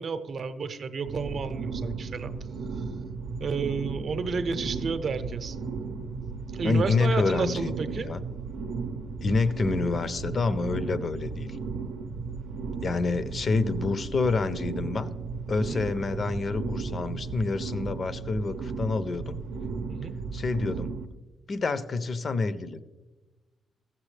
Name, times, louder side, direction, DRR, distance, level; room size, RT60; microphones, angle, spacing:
voice 1, 0.0-2.3 2.8-2.9 3.4-5.6 6.5-8.1 15.7-15.8 19.9-20.1, right 5 dB, 50° right, 9 dB, 0.7 m, -31 dB
sound 1, 1.1-21.1, right 4 dB, 85° right, 0.6 m, -35 dB
voice 2, 6.6-8.2 9.2-11.6 12.8-15.2 15.5-19.4 20.3-20.9 21.5-22.8, left 3 dB, 40° left, 13 dB, 0.5 m, -27 dB
16.0 x 7.4 x 3.3 m, 1.2 s
cardioid pair, 125°, 0 cm